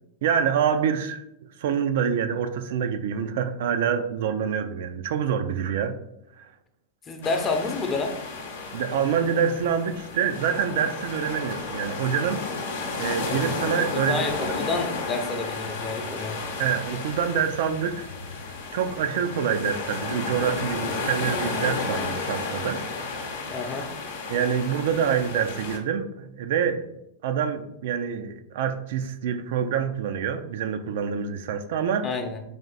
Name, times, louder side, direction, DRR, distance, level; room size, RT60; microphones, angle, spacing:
voice 1, 0.2-1.2 1.6-6.0 6.4-6.5 8.7-12.4 13.0-14.6 16.6-18.1 18.5-22.8 24.3-26.9 27.2-32.1, right 7 dB, 60° right, 8 dB, 0.4 m, -26 dB
voice 2, 7.1-8.2 13.9-16.4 23.5-23.9 32.0-32.4, left 3 dB, 25° left, 5 dB, 0.7 m, -29 dB
sound 1, 7.2-25.8, left 4 dB, 65° left, 0.7 m, -33 dB
3.4 x 3.2 x 3.9 m, 0.82 s
hypercardioid pair, 95°, 0 cm